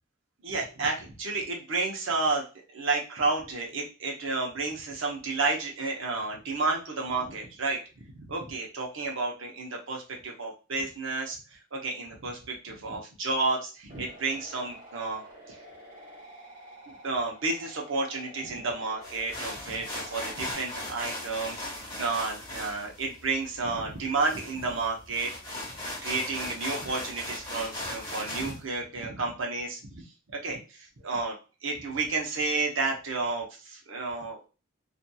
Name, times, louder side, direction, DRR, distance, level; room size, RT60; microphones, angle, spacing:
voice 1, 0.4-2.4 2.7-15.6 16.9-25.3 26.0-30.1 30.3-31.3 31.6-34.5, right 3 dB, 70° right, 0 dB, 0.7 m, -31 dB
sound 1, 13.9-20.5, equal, 45° right, 0.9 m, -49 dB
sound 2, 19.0-28.6, left 1 dB, 20° left, 1.1 m, -38 dB
2.7 x 2.5 x 2.2 m, 0.33 s
head